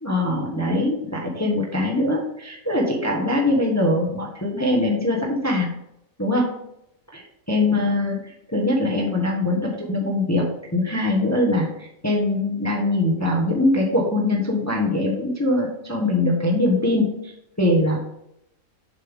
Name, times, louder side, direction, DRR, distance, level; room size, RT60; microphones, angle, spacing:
voice 1, 0.0-5.7 6.2-6.5 7.1-7.2 7.5-18.0, left 1 dB, 15° left, -2 dB, 1.1 m, -22 dB
7.5 x 5.5 x 3.6 m, 0.79 s
omnidirectional pair, 1.4 m